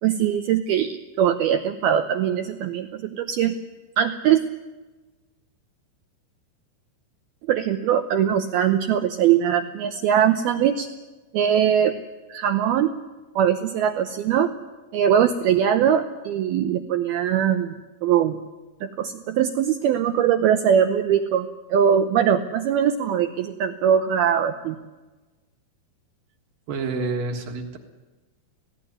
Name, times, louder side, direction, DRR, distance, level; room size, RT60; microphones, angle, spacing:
voice 1, 0.0-3.6 4.0-4.4 7.5-10.9 11.3-11.9 12.3-12.9 13.4-14.5 14.9-17.7 18.0-18.4 18.8-24.8, right 9 dB, 85° right, 7 dB, 2.1 m, -21 dB
voice 2, 26.7-27.8, right 3 dB, 60° right, 4 dB, 2.7 m, -28 dB
19.5 x 16.5 x 9.6 m, 1.2 s
omnidirectional pair, 5.6 m